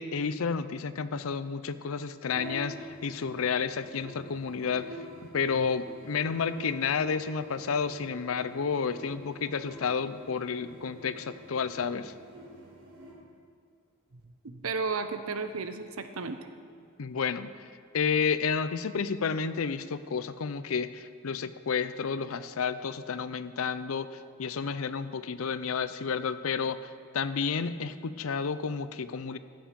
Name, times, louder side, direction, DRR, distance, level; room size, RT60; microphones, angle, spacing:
voice 1, 0.0-4.9 5.3-12.1 17.0-17.5 17.9-24.1 24.4-29.4, left 5 dB, 75° left, 13 dB, 0.5 m, -31 dB
sound 1, 2.2-13.1, equal, 65° right, 3.3 m, -47 dB
voice 2, 14.4-16.4, right 4 dB, 80° right, 9 dB, 0.8 m, -33 dB
15.0 x 7.7 x 5.2 m, 2.4 s
head